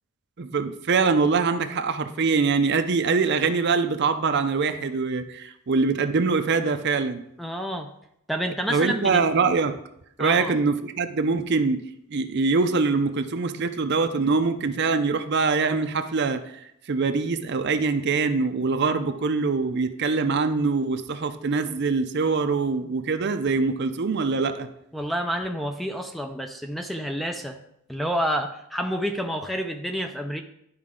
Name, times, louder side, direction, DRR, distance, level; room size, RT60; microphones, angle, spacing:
voice 1, 0.4-7.2 8.7-9.8 10.2-11.8 12.1-24.7, right 4 dB, 50° right, 9 dB, 0.5 m, -23 dB
voice 2, 7.4-7.9 8.3-9.2 10.2-10.6 24.9-27.6 27.9-30.4, equal, ahead, 5 dB, 0.4 m, -29 dB
11.5 x 4.7 x 3.7 m, 0.77 s
head